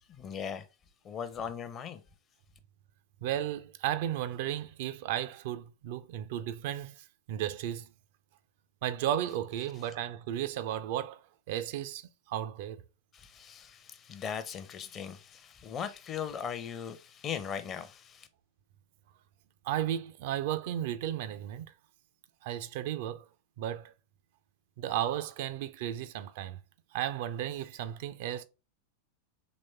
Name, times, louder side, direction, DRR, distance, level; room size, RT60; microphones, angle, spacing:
voice 1, 0.1-0.6 1.0-2.0 13.1-18.3, left 7 dB, 30° left, 0.6 m, -39 dB
voice 2, 3.2-7.9 8.8-11.2 11.5-12.8 19.6-21.7 22.4-23.2 23.6-23.9 24.8-26.6 26.9-28.4, right 11 dB, 50° right, 0.4 m, -34 dB
4.2 x 3.1 x 3.3 m
figure-of-eight pair, 90°, 0 cm